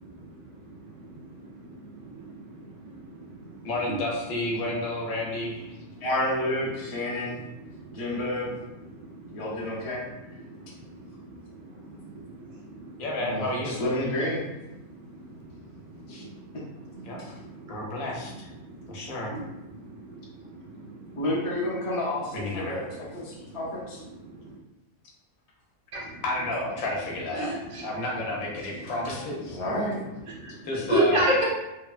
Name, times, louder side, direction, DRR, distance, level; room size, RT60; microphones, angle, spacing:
voice 1, 0.1-3.9 5.7-6.1 6.7-6.8 7.1-8.3 8.7-13.0 13.3-13.4 14.8-18.3 18.6-21.6 22.9-24.6 25.9-26.2 27.3-27.9 28.8-28.9 29.7-31.4, right 1 dB, 35° right, -4 dB, 0.5 m, -35 dB
voice 2, 3.6-5.8 13.0-13.8 16.1-16.3 17.0-17.2 17.7-18.5 18.9-19.3 22.3-22.7 26.2-27.5 27.8-29.6 30.6-31.2, left 2 dB, 90° left, -2 dB, 1.1 m, -31 dB
voice 3, 6.0-7.4 7.9-8.5 9.3-10.0 13.2-14.4 16.2-16.3 16.9-17.3 21.2-22.8 23.1-24.0 29.5-30.0, left 1 dB, 35° left, -6 dB, 0.5 m, -30 dB
3.1 x 2.2 x 2.3 m, 0.97 s
omnidirectional pair, 1.4 m